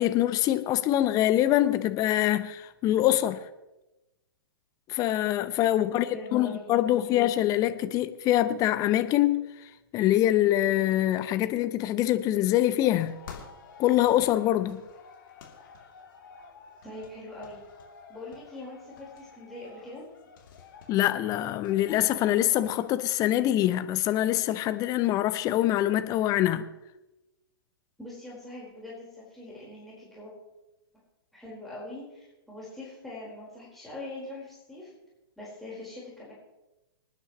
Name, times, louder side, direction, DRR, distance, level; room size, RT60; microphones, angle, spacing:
voice 1, 0.0-3.4 4.9-6.1 6.3-9.5 9.9-13.2 13.8-14.8 20.9-26.7, left 13 dB, 25° left, 0.7 m, -24 dB
voice 2, 5.8-7.2 16.8-17.6 18.1-20.0 28.0-30.3 31.3-34.9 35.4-36.3, left 2 dB, ahead, 4.5 m, -43 dB
sound 1, 12.8-22.9, left 5 dB, 55° left, 3.0 m, -50 dB
26.5 x 9.7 x 3.1 m
figure-of-eight pair, 115°, 13 cm